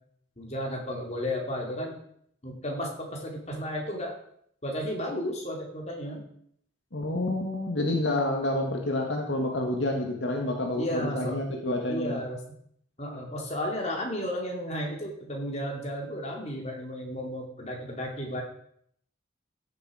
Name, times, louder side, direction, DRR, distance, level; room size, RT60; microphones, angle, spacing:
voice 1, 0.4-2.0 2.4-4.2 4.6-6.2 10.8-11.4 11.9-12.4 13.0-18.4, equal, 35° left, 0 dB, 2.5 m, -33 dB
voice 2, 6.9-12.2, left 1 dB, 65° left, 2 dB, 1.7 m, -28 dB
15.5 x 6.9 x 4.9 m, 0.68 s
head